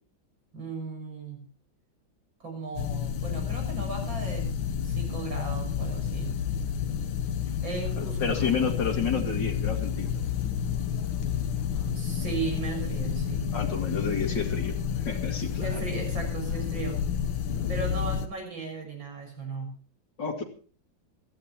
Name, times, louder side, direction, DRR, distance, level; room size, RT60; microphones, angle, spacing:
voice 1, 0.5-1.4 2.4-4.5 4.8-6.4 7.6-8.6 11.9-13.6 15.6-17.1 17.7-19.8, right 4 dB, 75° right, 2 dB, 7.2 m, -36 dB
sound 1, 2.7-18.3, left 8 dB, 85° left, 1.8 m, -30 dB
voice 2, 8.0-10.1 13.5-14.8 15.0-15.8 20.2-20.4, left 6 dB, 65° left, 5 dB, 2.9 m, -30 dB
27.5 x 11.0 x 3.0 m, 0.40 s
omnidirectional pair, 2.1 m